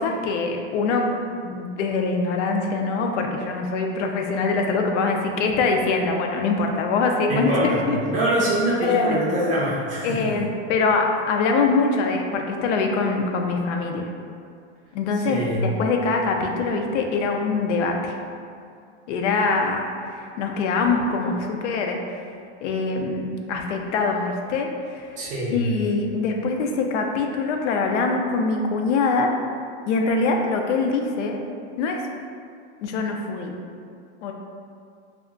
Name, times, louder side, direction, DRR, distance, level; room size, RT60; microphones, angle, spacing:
voice 1, 0.0-8.0 8.8-9.2 10.0-14.1 14.9-18.1 19.1-22.3 22.6-25.2 25.5-29.3 29.9-31.5 31.8-32.0 32.8-33.6 34.2-34.3, left 4 dB, 80° left, 2 dB, 0.5 m, -23 dB
voice 2, 7.3-10.4 15.3-15.6 25.2-25.6, right 1 dB, 20° right, -7 dB, 0.5 m, -24 dB
2.3 x 2.1 x 3.6 m, 2.3 s
supercardioid pair, 150°, 35 cm